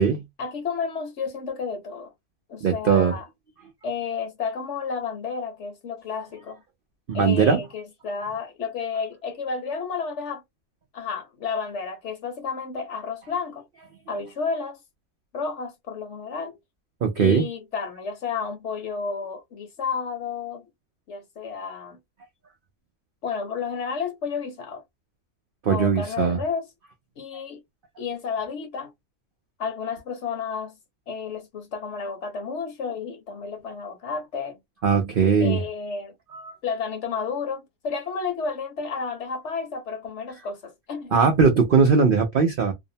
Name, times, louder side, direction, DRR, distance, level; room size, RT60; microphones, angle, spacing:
voice 1, 0.4-2.1 2.5-3.2 3.8-6.6 7.1-10.4 10.9-13.6 14.1-14.8 15.3-16.6 17.2-20.6 21.1-22.0 23.2-24.8 25.7-26.6 27.2-27.6 28.0-28.9 29.6-30.7 31.1-34.6 35.4-36.1 36.6-41.3, left 5 dB, 60° left, 0.9 m, -31 dB
voice 2, 2.6-3.1 7.1-7.6 17.0-17.4 25.6-26.4 34.8-35.6 36.3-36.5 41.1-42.7, right 6 dB, 65° right, 0.5 m, -19 dB
2.7 x 2.0 x 2.6 m
omnidirectional pair, 1.6 m